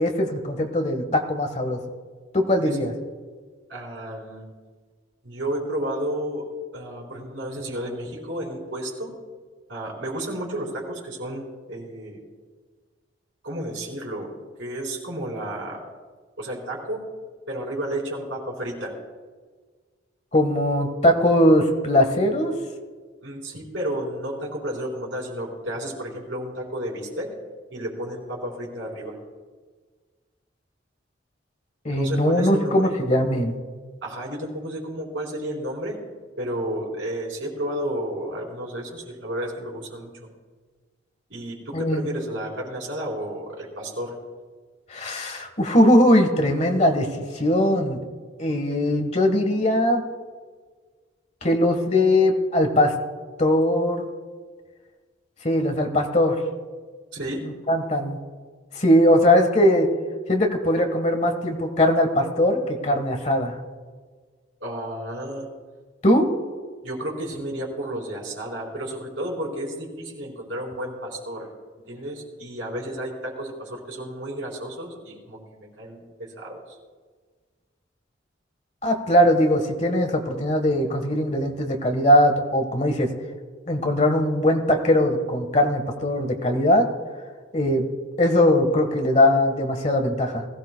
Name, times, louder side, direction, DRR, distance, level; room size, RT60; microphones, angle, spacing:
voice 1, 0.0-1.8 2.3-2.9 20.3-22.5 31.8-33.6 41.7-42.1 44.9-47.1 47.3-48.0 48.4-50.1 51.4-52.9 53.4-54.1 55.4-56.4 57.7-58.2 58.7-59.9 60.3-63.5 66.0-66.3 78.8-83.1 83.7-86.9 87.5-87.8 88.2-90.5, left 1 dB, 35° left, 5 dB, 1.3 m, -20 dB
voice 2, 3.7-4.5 5.2-6.5 6.7-9.1 9.7-12.2 13.4-14.3 14.6-15.8 16.4-17.0 17.5-18.9 23.2-27.3 27.7-29.2 31.9-32.9 34.0-36.0 36.4-40.3 41.3-44.2 57.1-57.4 64.6-65.5 66.8-71.5 71.9-76.8, right 1 dB, 85° right, -2 dB, 3.9 m, -32 dB
20.0 x 16.0 x 2.2 m, 1.5 s
head